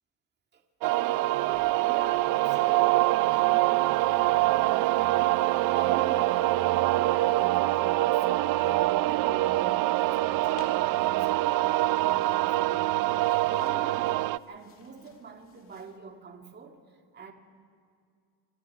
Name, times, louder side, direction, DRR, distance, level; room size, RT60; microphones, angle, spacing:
voice 1, 0.5-5.5 5.7-6.6 7.1-12.9 13.5-17.3, right 5 dB, 25° right, 3 dB, 2.2 m, -44 dB
sound 1, 0.8-14.4, right 17 dB, 50° right, 0.5 m, -25 dB
sound 2, 10.5-16.0, left 5 dB, 30° left, 2.2 m, -53 dB
27.5 x 25.0 x 4.7 m, 2.2 s
cardioid pair, 135°, 42 cm